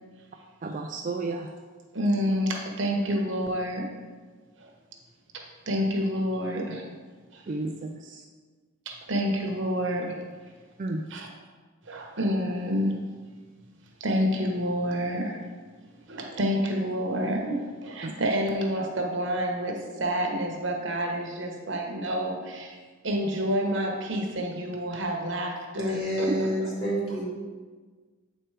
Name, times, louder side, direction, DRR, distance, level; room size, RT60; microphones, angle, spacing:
voice 1, 0.6-1.5 7.5-8.2 10.8-11.0 18.0-18.1 26.3-26.4, right 2 dB, 35° right, 3 dB, 0.4 m, -32 dB
voice 2, 1.9-3.9 4.6-4.7 5.3-6.9 7.3-7.4 8.9-10.2 11.1-11.3 11.9-13.0 14.0-15.4 16.1-22.8 23.0-26.7, equal, 60° right, 1 dB, 1.1 m, -28 dB
voice 3, 25.8-27.2, equal, 25° left, -6 dB, 2.2 m, -28 dB
7.9 x 4.5 x 4.9 m, 1.4 s
head